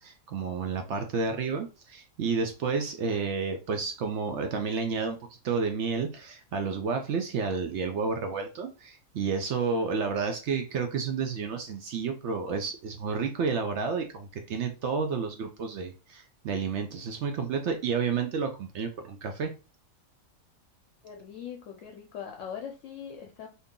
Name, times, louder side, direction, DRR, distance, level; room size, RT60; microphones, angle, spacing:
voice 1, 0.0-5.2 5.4-19.5, right 5 dB, 65° right, 0.8 m, -30 dB
voice 2, 21.0-23.5, left 8 dB, 70° left, 0.9 m, -41 dB
2.8 x 2.6 x 3.6 m
omnidirectional pair, 1.4 m